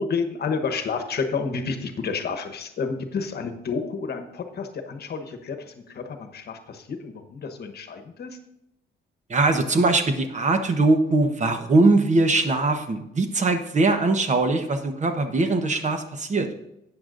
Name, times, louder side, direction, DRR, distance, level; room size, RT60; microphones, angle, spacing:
voice 1, 0.0-8.4, left 5 dB, 55° left, 7 dB, 1.1 m, -30 dB
voice 2, 9.3-16.5, right 2 dB, 35° right, 7 dB, 1.1 m, -21 dB
12.0 x 8.8 x 2.6 m, 0.84 s
cardioid pair, 90°, 20 cm